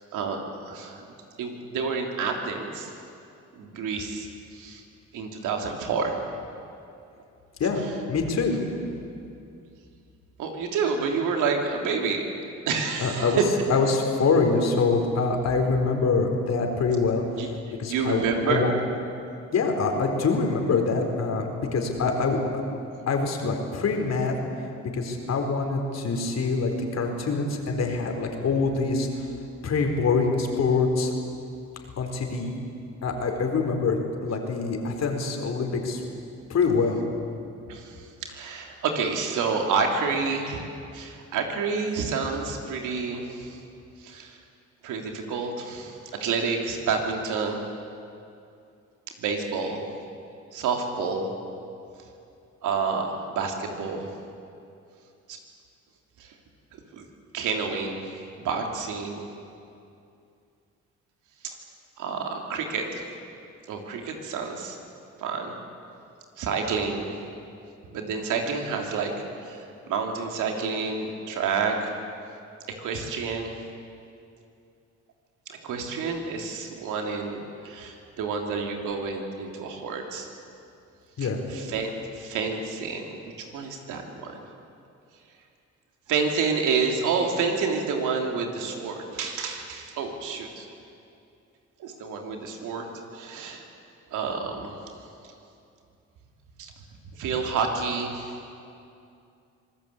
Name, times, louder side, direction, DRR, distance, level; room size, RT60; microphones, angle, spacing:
voice 1, 0.7-1.0 1.4-2.9 3.5-4.8 5.1-6.2 10.4-12.2 12.6-13.4 17.4-17.5 17.9-18.7 37.7-43.6 44.0-44.4 44.8-47.6 49.2-49.9 50.5-51.3 52.6-54.1 55.3-55.4 56.2-56.3 56.9-57.1 57.3-58.1 58.4-59.2 61.4-61.5 62.0-63.0 63.7-64.8 65.2-65.5 66.4-67.1 67.9-71.9 72.8-73.5 75.5-80.3 81.2-84.4 86.1-90.7 91.8-92.9 93.1-93.6 94.1-94.8 96.6-96.7 97.1-98.3, right 5 dB, 90° right, 2 dB, 3.3 m, -29 dB
voice 2, 8.1-8.6 13.0-13.4 13.7-18.7 19.5-22.6 23.1-24.3 24.9-29.3 29.6-31.1 32.0-32.5 33.0-36.0 36.5-37.0 81.2-81.4, left 4 dB, 60° left, 3 dB, 4.3 m, -25 dB
25.5 x 19.0 x 8.5 m, 2.5 s
cardioid pair, 90°, 30 cm